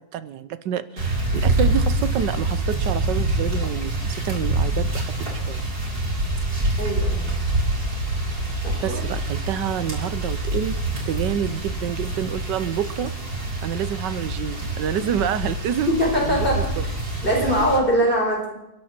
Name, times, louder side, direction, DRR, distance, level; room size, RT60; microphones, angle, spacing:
voice 1, 0.0-5.6 8.8-10.8 11.1-13.1 13.6-16.0 16.2-16.6, right 9 dB, 70° right, 14 dB, 1.3 m, -28 dB
sound 1, 1.0-17.8, right 2 dB, 55° right, 5.3 m, -26 dB
voice 2, 6.8-7.3 8.9-9.0 15.9-16.7 17.2-18.5, equal, 25° left, -1 dB, 4.8 m, -22 dB
29.0 x 11.0 x 4.3 m, 0.89 s
omnidirectional pair, 2.1 m